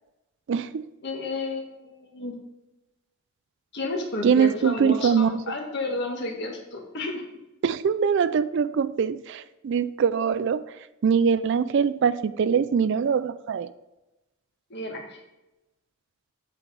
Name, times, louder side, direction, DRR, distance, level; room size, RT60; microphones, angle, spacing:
voice 1, 0.5-0.8 4.2-5.6 7.6-10.6 11.0-13.7, right 6 dB, 55° right, 15 dB, 0.3 m, -23 dB
voice 2, 1.0-2.3 3.7-7.2 14.7-15.2, left 2 dB, 50° left, 1 dB, 1.7 m, -32 dB
8.4 x 5.2 x 5.1 m, 0.99 s
head